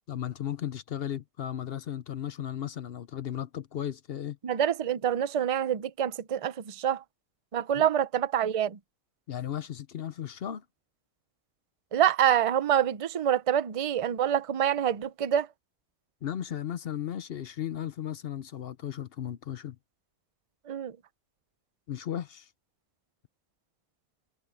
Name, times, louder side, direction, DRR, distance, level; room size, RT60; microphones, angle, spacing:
voice 1, 0.1-4.4 7.8-7.9 9.3-10.6 16.2-19.8 21.9-22.5, left 10 dB, 55° left, 0.7 m, -35 dB
voice 2, 4.4-7.0 7.5-8.8 11.9-15.5 20.7-21.0, right 10 dB, 45° right, 0.4 m, -26 dB
omnidirectional pair, 1.5 m